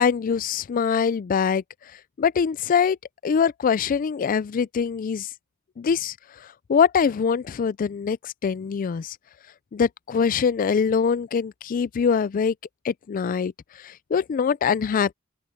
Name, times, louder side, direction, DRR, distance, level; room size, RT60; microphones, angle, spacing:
voice 1, 0.0-1.6 2.2-3.0 3.2-5.3 5.8-6.1 6.7-9.2 9.7-12.5 12.8-13.5 13.8-15.1, left 6 dB, 40° left, 0.3 m, -23 dB
open air
head